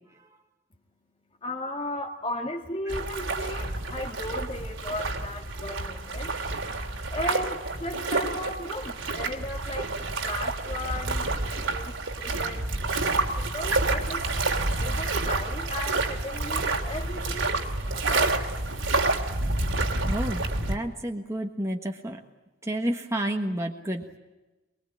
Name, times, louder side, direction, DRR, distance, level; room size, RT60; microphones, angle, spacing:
voice 1, 0.9-14.3 14.8-18.4 18.7-18.8, left 1 dB, 30° left, -1 dB, 2.0 m, -36 dB
sound 1, 2.9-20.8, right 2 dB, 70° right, 2.8 m, -29 dB
voice 2, 20.0-22.2 22.6-24.1, right 1 dB, 15° right, 2 dB, 1.5 m, -30 dB
23.5 x 22.0 x 8.7 m, 1.1 s
head